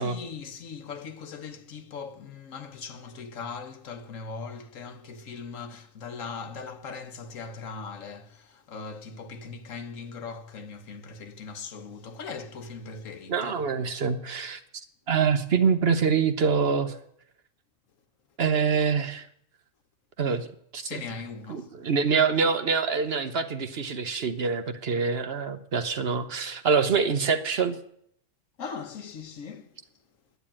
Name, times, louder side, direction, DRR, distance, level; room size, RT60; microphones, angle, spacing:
voice 1, 0.0-13.7 20.8-21.7 28.6-29.7, left 5 dB, 90° left, 1.5 m, -40 dB
voice 2, 13.3-14.6 15.1-17.0 18.4-19.3 20.2-20.5 20.7-20.8 21.5-27.8, right 5 dB, 55° right, 1.1 m, -25 dB
11.5 x 9.4 x 8.7 m
omnidirectional pair, 1.3 m